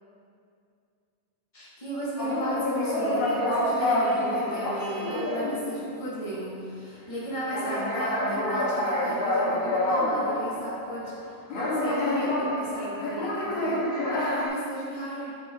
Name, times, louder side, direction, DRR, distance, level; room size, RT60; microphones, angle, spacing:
voice 1, 1.5-11.1 11.5-15.3, right 1 dB, 15° left, -9 dB, 1.0 m, -35 dB
sound 1, 2.2-6.0 6.4-6.5 7.5-11.2 11.5-14.5, left 1 dB, 60° left, 2.3 m, -27 dB
7.6 x 6.0 x 3.7 m, 2.3 s
omnidirectional pair, 3.6 m